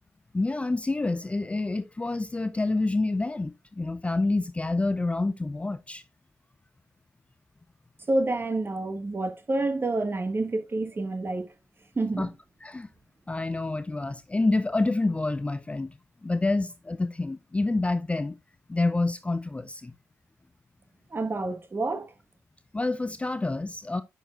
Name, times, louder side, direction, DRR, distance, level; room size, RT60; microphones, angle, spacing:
voice 1, 0.3-6.0 12.2-12.3 12.6-12.9 13.3-15.9 16.2-18.4 18.7-19.9 22.7-24.0, left 2 dB, 15° left, 0.4 m, -28 dB
voice 2, 8.1-11.5 11.9-12.3 21.1-22.1, right 2 dB, 30° right, 1.3 m, -28 dB
10.0 x 6.4 x 2.4 m
figure-of-eight pair, 40°, 8 cm